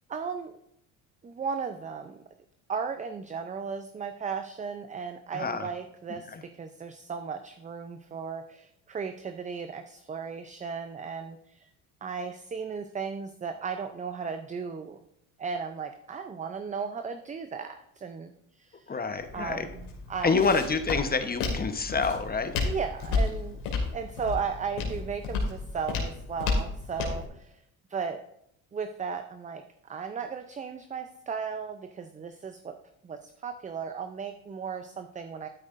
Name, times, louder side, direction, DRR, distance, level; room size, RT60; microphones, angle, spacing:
voice 1, 0.1-0.6 1.2-2.2 2.7-11.7 12.0-15.0 15.4-19.0 19.3-20.3 22.6-23.6 23.9-27.6 27.9-28.2 28.7-32.8 33.0-35.5, right 6 dB, 20° right, 8 dB, 0.5 m, -36 dB
voice 2, 5.3-5.7 6.3-6.4 18.9-19.7 20.2-22.5, left 4 dB, 20° left, 9 dB, 1.0 m, -27 dB
Walk footsteps, 19.2-27.3, left 3 dB, 80° left, 2.5 m, -32 dB
12.0 x 9.7 x 2.6 m, 0.76 s
hypercardioid pair, 70°, 42 cm